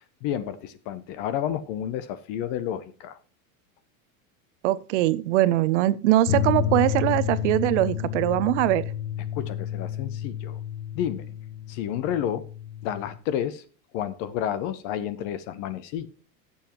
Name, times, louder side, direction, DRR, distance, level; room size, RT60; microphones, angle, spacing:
voice 1, 0.2-3.2 9.3-10.6 10.9-11.3 11.7-12.4 12.8-13.6 13.9-16.1, left 10 dB, 30° left, 14 dB, 0.5 m, -30 dB
voice 2, 4.6-8.9, right 15 dB, 55° right, 17 dB, 0.6 m, -22 dB
sound 1, 6.3-13.2, left 10 dB, 55° left, 1.0 m, -30 dB
17.5 x 7.1 x 2.9 m, 0.38 s
supercardioid pair, 165°, 43 cm